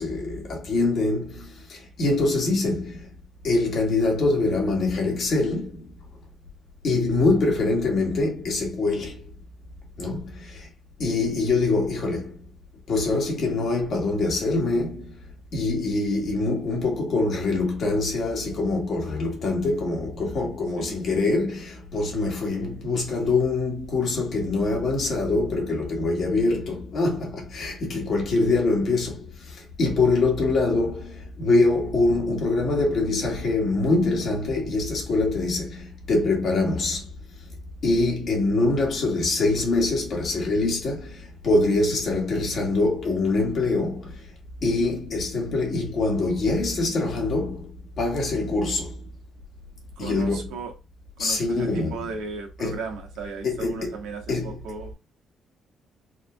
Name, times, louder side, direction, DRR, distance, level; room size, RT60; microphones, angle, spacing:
voice 1, 0.0-3.1 3.4-5.9 6.8-9.2 10.0-10.7 11.0-12.4 12.9-15.2 15.5-37.1 37.8-44.2 44.6-49.0 50.0-50.5 51.2-52.0 52.6-52.8 53.4-53.9 54.3-54.6, left 3 dB, 60° left, 1.7 m, -24 dB
voice 2, 50.0-50.7 51.2-54.9, right 4 dB, 90° right, 1.1 m, -36 dB
4.2 x 2.7 x 2.2 m
cardioid pair, 90°, 0 cm